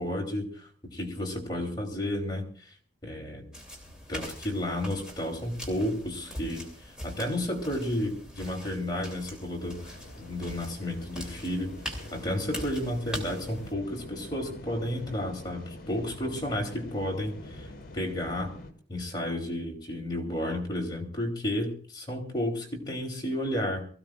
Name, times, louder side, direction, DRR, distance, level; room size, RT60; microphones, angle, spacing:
voice 1, 0.0-2.4 3.0-3.5 4.1-6.7 7.0-11.8 12.1-17.7 17.9-18.5 18.9-23.9, left 1 dB, 20° left, 0 dB, 3.4 m, -32 dB
sound 1, 3.5-13.7, equal, 5° right, 3.1 m, -42 dB
sound 2, 9.6-18.7, left 1 dB, 45° left, 2.5 m, -45 dB
24.5 x 15.5 x 2.5 m, 0.43 s
head